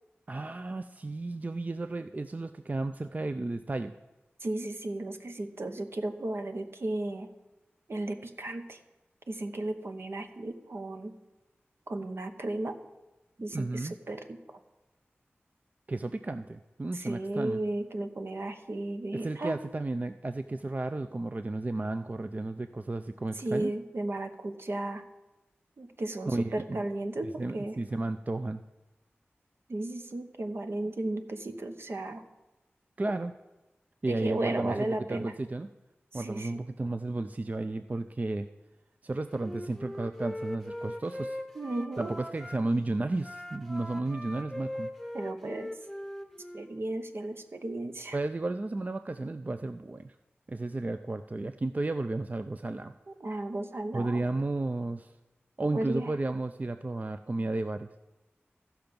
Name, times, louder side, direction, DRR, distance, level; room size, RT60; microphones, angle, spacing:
voice 1, 0.3-3.9 13.5-13.9 15.9-17.6 19.1-23.7 26.3-26.8 27.2-28.6 33.0-33.3 34.0-35.7 36.1-38.5 39.0-41.4 42.0-44.9 48.1-50.1 50.5-52.9 53.9-55.1 55.6-57.9, right 2 dB, 35° right, 9 dB, 0.4 m, -33 dB
voice 2, 4.4-7.3 7.9-8.8 9.3-11.2 11.9-12.8 13.4-14.6 16.9-19.6 23.4-25.0 25.8-27.8 29.7-32.2 34.1-35.3 36.1-36.6 41.6-42.2 45.1-45.7 46.5-48.2 53.1-54.3 55.7-56.1, right 2 dB, 65° right, 7 dB, 0.9 m, -35 dB
Wind instrument woodwind instrument, 39.3-42.6 43.2-46.7, left 1 dB, ahead, 0.9 m, -40 dB
15.0 x 5.8 x 5.2 m, 1.0 s
cardioid pair, 45°, 4 cm